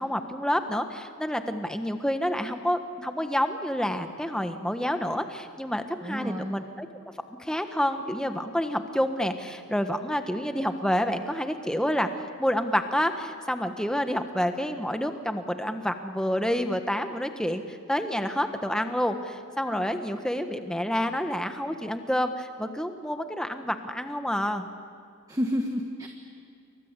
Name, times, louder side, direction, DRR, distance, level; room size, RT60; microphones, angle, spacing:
voice 1, 0.0-6.9 7.4-12.1 12.4-24.7, equal, 5° left, 7 dB, 1.3 m, -28 dB
voice 2, 6.0-6.5 25.3-26.1, equal, 15° right, 3 dB, 1.5 m, -30 dB
28.5 x 24.0 x 8.3 m, 2.5 s
head